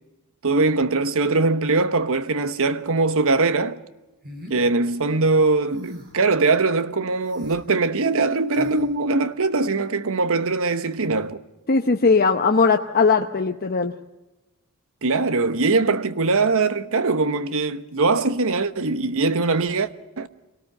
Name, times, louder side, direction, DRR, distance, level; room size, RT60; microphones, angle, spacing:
voice 1, 0.4-3.8 4.5-11.4 15.0-19.9 20.2-20.3, right 3 dB, 65° right, 1.1 m, -21 dB
sound 1, 4.2-4.6 5.7-6.2 7.2-7.6 8.5-8.8, left 1 dB, 45° right, 7.6 m, -41 dB
voice 2, 11.7-13.9, left 4 dB, 45° left, 0.9 m, -19 dB
26.0 x 18.5 x 6.6 m
head